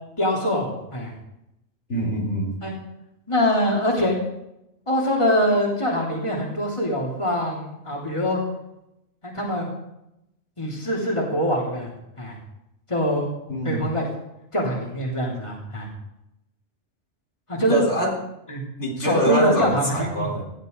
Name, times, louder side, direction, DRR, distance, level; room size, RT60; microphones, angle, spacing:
voice 1, 0.2-1.1 2.6-2.7 3.3-4.2 4.9-8.4 9.2-9.7 10.6-11.9 12.2-12.4 12.9-13.3 13.6-14.1 14.5-15.9 17.5-17.8 18.5-18.6 19.0-20.4, equal, 25° left, -2 dB, 3.5 m, -23 dB
voice 2, 1.9-2.5 13.5-13.9 17.7-18.2 18.8-20.4, right 1 dB, 65° left, -2 dB, 4.5 m, -25 dB
19.0 x 15.0 x 4.0 m, 0.85 s
omnidirectional pair, 1.3 m